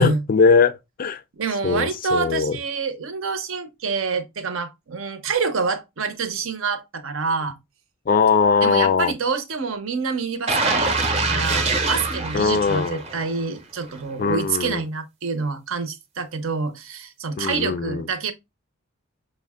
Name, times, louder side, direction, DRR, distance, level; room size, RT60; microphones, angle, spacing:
voice 1, 0.0-1.2 1.6-2.6 8.1-9.1 12.3-13.0 14.2-14.8 17.4-18.0, left 5 dB, 40° left, 0.3 m, -20 dB
voice 2, 1.3-7.6 8.6-18.3, right 5 dB, 65° right, 0.7 m, -27 dB
sound 1, 10.5-13.4 13.8-14.0, right 3 dB, 30° right, 0.7 m, -24 dB
6.2 x 2.1 x 3.5 m
head